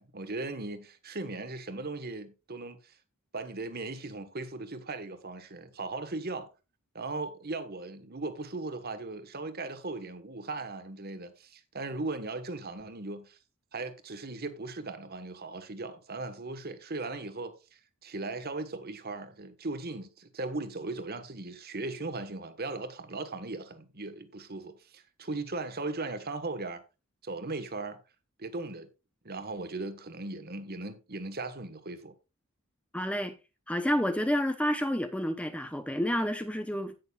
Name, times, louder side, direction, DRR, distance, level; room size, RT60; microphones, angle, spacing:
voice 1, 0.0-2.9 3.3-6.5 6.9-13.4 13.7-26.8 27.2-28.0 28.4-28.9 29.2-32.1, right 3 dB, 45° right, 1.4 m, -38 dB
voice 2, 32.9-33.4 33.7-36.9, equal, 5° left, 0.7 m, -29 dB
16.5 x 6.5 x 2.4 m
head